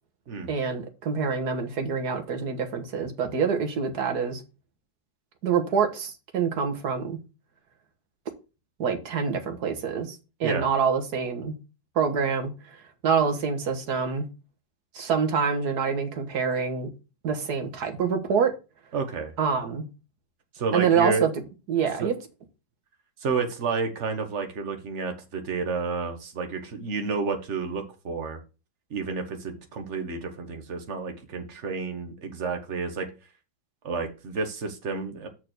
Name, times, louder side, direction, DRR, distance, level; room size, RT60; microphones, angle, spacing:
voice 1, 0.5-4.4 5.4-7.2 8.8-11.6 12.0-12.8 13.0-14.3 14.9-16.9 17.2-18.5 19.4-19.9 20.7-21.3 21.7-22.1, right 6 dB, 60° right, 1.8 m, -26 dB
voice 2, 18.9-19.3 20.5-21.3 22.0-22.1 23.2-28.4 28.9-33.1 33.8-35.3, right 4 dB, 40° right, 1.5 m, -30 dB
6.7 x 4.6 x 6.6 m
omnidirectional pair, 2.0 m